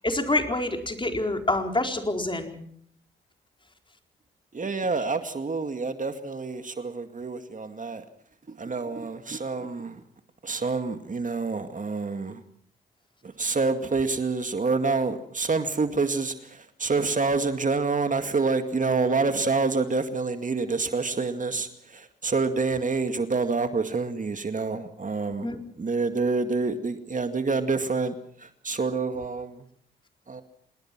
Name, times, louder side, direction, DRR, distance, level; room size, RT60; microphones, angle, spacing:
voice 1, 0.0-2.6 25.4-25.6, left 2 dB, 25° left, 4 dB, 4.4 m, -27 dB
voice 2, 4.5-8.0 8.5-10.0 10.4-12.4 13.2-29.6 30.3-30.4, right 4 dB, 40° right, 8 dB, 2.1 m, -27 dB
27.0 x 20.0 x 6.1 m, 0.64 s
supercardioid pair, 45°, 20 cm